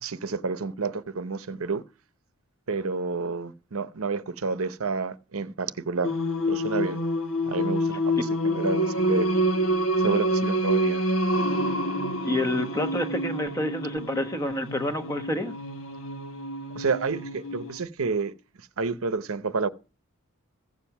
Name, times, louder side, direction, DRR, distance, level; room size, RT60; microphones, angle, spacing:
voice 1, 0.0-1.8 2.7-6.1 6.5-7.0 7.5-9.3 10.0-11.0 16.7-18.3 18.8-19.7, right 4 dB, 80° right, 0.8 m, -29 dB
Singing, 6.0-17.8, equal, 70° left, 1.3 m, -27 dB
voice 2, 12.2-15.5, left 1 dB, 15° left, 1.0 m, -28 dB
15.5 x 7.4 x 5.8 m
head